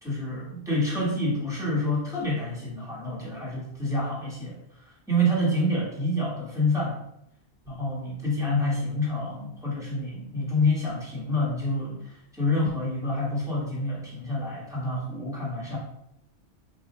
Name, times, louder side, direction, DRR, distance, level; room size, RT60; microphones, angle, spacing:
voice 1, 0.0-4.6 5.1-7.0 7.7-12.0 12.3-15.8, left 1 dB, ahead, -7 dB, 1.4 m, -27 dB
4.2 x 2.6 x 4.2 m, 0.76 s
omnidirectional pair, 1.4 m